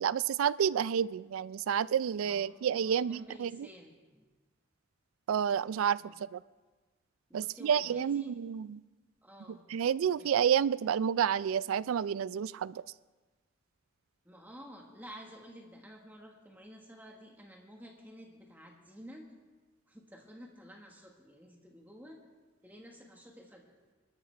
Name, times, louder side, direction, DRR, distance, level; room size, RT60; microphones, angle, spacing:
voice 1, 0.0-3.5 5.3-6.0 6.3-6.4 7.3-8.6 9.7-12.8, right 8 dB, 80° right, 19 dB, 0.3 m, -29 dB
voice 2, 2.2-4.2 6.0-6.2 7.3-8.4 9.2-9.6 10.1-10.5 14.2-19.3 19.9-22.2 22.6-23.7, equal, 10° right, 1 dB, 1.4 m, -51 dB
24.5 x 13.0 x 3.3 m, 1.3 s
head